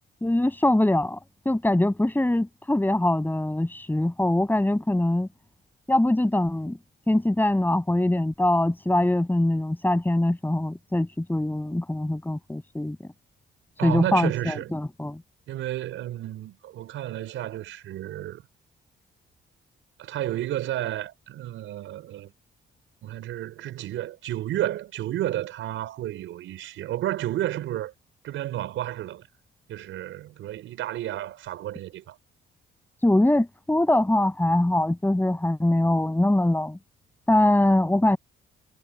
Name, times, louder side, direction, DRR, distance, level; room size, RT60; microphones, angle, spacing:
voice 1, 0.2-1.2 1.5-5.3 5.9-6.8 7.1-13.0 13.8-15.2 33.0-36.8 37.3-38.2, left 1 dB, 10° left, 7.5 m, -23 dB
voice 2, 13.8-14.8 15.5-18.4 20.0-22.3 23.0-27.9 28.2-29.3 29.7-32.2, right 13 dB, 85° right, 5.1 m, -31 dB
cardioid pair, 90°, 20 cm